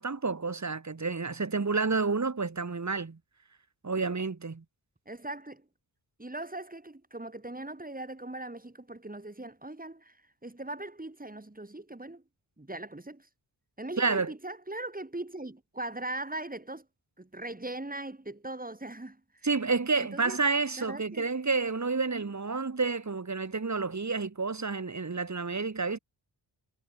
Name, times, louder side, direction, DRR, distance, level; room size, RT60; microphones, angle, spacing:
voice 1, 0.0-3.2 3.8-4.6 14.0-14.3 19.4-26.0, right 4 dB, 35° right, 2.1 m, -30 dB
voice 2, 5.0-5.6 6.2-10.2 10.4-12.2 12.6-13.3 13.8-16.9 17.2-19.2 20.0-20.4 20.8-21.3, right 2 dB, 15° right, 3.4 m, -40 dB
wide cardioid pair, 85°, 48 cm